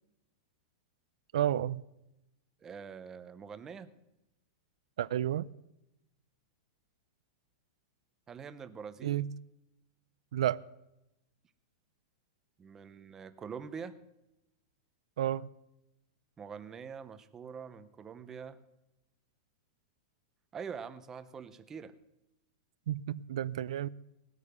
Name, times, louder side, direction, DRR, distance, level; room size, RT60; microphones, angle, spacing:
voice 1, 1.3-1.8 5.0-5.5 9.0-9.3 10.3-10.6 15.2-15.5 22.9-23.9, right 11 dB, 75° right, 0.5 m, -31 dB
voice 2, 2.6-3.9 8.3-9.2 12.6-14.0 16.4-18.6 20.5-21.9, right 6 dB, 15° right, 0.7 m, -44 dB
19.0 x 8.7 x 6.7 m
supercardioid pair, 170°, 3 cm